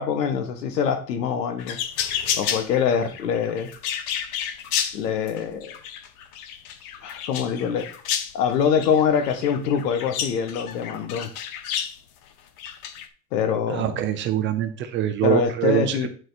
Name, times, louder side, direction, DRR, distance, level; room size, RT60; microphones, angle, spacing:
voice 1, 0.0-1.8 2.4-3.7 4.9-5.7 7.0-7.9 8.3-11.3 13.3-14.0 15.2-16.1, left 7 dB, 85° left, 8 dB, 1.7 m, -24 dB
sound 1, 1.6-12.0 12.6-13.1, left 9 dB, 60° left, 1.2 m, -31 dB
voice 2, 13.7-16.1, right 11 dB, 25° right, 8 dB, 0.7 m, -24 dB
9.6 x 4.6 x 4.1 m, 0.40 s
supercardioid pair, 150°, 48 cm